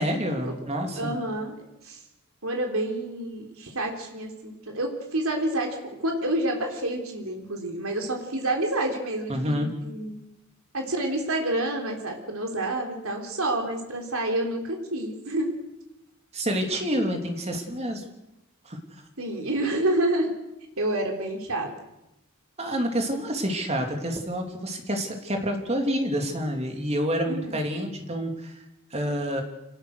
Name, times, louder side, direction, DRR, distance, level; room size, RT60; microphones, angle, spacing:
voice 1, 0.0-1.1 9.3-9.7 16.3-18.0 18.6-18.8 22.6-28.6 28.9-29.4, equal, 30° right, 3 dB, 3.2 m, -28 dB
voice 2, 1.0-1.6 1.8-2.0 2.4-10.1 10.7-15.5 19.2-20.3 20.8-21.7 27.2-27.6, right 1 dB, 80° right, 2 dB, 3.6 m, -28 dB
25.5 x 18.5 x 6.6 m, 0.93 s
head